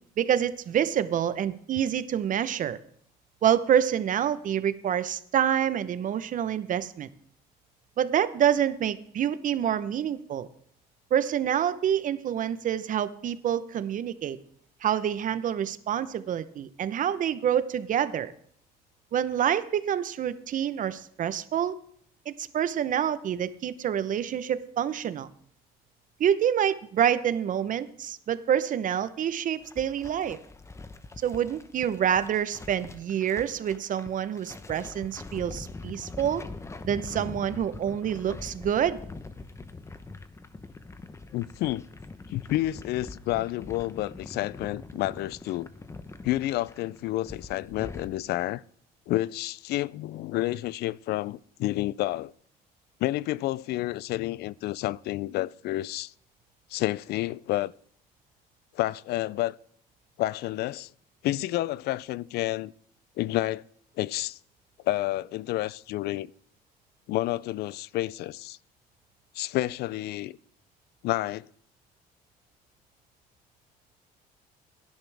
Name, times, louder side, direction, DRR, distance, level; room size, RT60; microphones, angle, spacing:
voice 1, 0.2-2.8 3.4-7.1 8.0-10.5 11.1-14.4 14.8-18.3 19.1-21.7 22.3-25.3 26.2-30.4 31.2-36.4 36.8-39.0, right 9 dB, 50° right, 0.8 m, -27 dB
sound 1, 29.6-48.1, left 3 dB, 15° left, 0.9 m, -43 dB
voice 2, 41.3-41.9 42.3-45.7 46.2-48.6 49.1-52.3 53.0-56.1 56.7-57.7 58.7-59.6 60.2-60.9 61.2-62.7 63.2-63.6 64.0-64.4 64.8-66.3 67.1-68.6 69.3-70.4 71.0-71.5, left 16 dB, 75° left, 0.4 m, -29 dB
17.0 x 10.5 x 3.4 m
cardioid pair, 110°, 17 cm